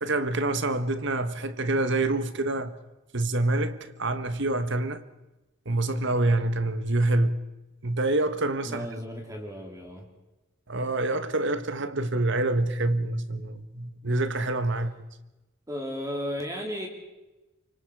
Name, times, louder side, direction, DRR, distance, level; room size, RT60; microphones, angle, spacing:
voice 1, 0.0-2.7 3.1-5.0 5.6-7.4 7.8-8.9 10.7-15.0, right 2 dB, 60° right, 1.6 m, -26 dB
voice 2, 8.7-10.1 15.7-16.9, equal, 15° right, 3.7 m, -34 dB
28.5 x 25.5 x 4.9 m
head